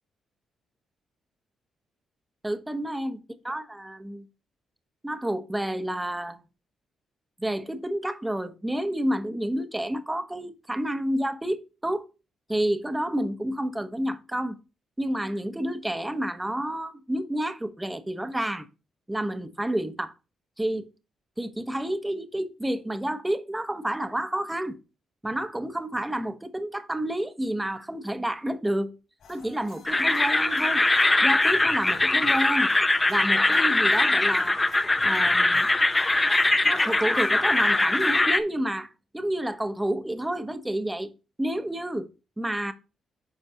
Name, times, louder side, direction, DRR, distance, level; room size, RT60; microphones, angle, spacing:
voice 1, 2.4-3.2 3.4-4.2 5.0-6.4 7.4-12.1 12.5-14.6 15.0-18.7 19.1-20.1 20.6-20.9 21.4-24.8 25.2-29.0 29.3-30.8 31.2-32.7 33.1-34.6 35.0-35.7 36.6-41.1 41.4-42.1 42.4-42.7, right 1 dB, 10° right, 1.0 m, -29 dB
sound 1, 29.2-38.2, left 4 dB, 75° left, 4.4 m, -51 dB
sound 2, 29.9-38.4, left 2 dB, 20° left, 0.7 m, -22 dB
10.5 x 4.4 x 2.8 m
cardioid pair, 70°, 0 cm